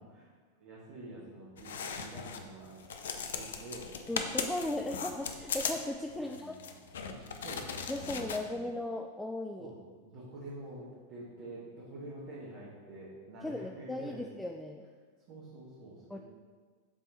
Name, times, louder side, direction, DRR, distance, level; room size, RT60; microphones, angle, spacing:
voice 1, 0.6-2.8 3.1-3.9 4.7-5.1 6.2-6.8 7.1-8.7 9.6-14.2 15.3-16.2, right 2 dB, 45° right, -8 dB, 1.3 m, -48 dB
sound 1, 1.6-2.5 2.8-8.4, left 6 dB, 60° left, 0.5 m, -38 dB
voice 2, 4.1-6.6 7.9-9.7 13.4-14.8 16.1-16.2, left 1 dB, 5° left, 3 dB, 0.3 m, -37 dB
7.4 x 3.5 x 4.1 m, 1.5 s
figure-of-eight pair, 90°, 0 cm